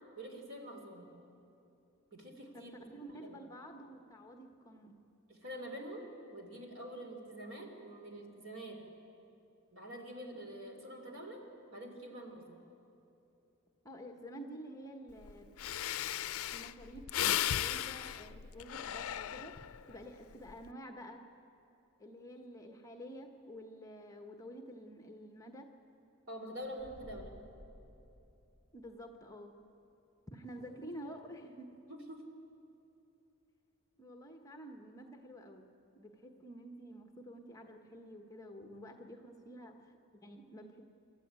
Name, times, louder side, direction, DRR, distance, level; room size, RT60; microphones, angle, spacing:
voice 1, 0.2-1.1 2.1-2.7 3.2-3.4 5.3-8.8 9.7-11.4 11.7-12.6 26.3-27.3 31.9-32.2, right 1 dB, 65° right, 3 dB, 3.2 m, -46 dB
voice 2, 2.5-5.0 13.8-15.5 16.5-19.5 19.9-21.2 22.0-25.7 28.7-29.5 30.3-31.7 34.0-35.7 35.9-40.8, equal, 15° left, 4 dB, 1.2 m, -50 dB
Breathing, 15.3-15.4 15.6-19.8 20.3-20.7, left 11 dB, 75° left, 0.4 m, -36 dB
sound 1, 26.6-29.1, left 1 dB, 20° right, 1.9 m, -55 dB
28.0 x 13.0 x 8.9 m, 2.9 s
head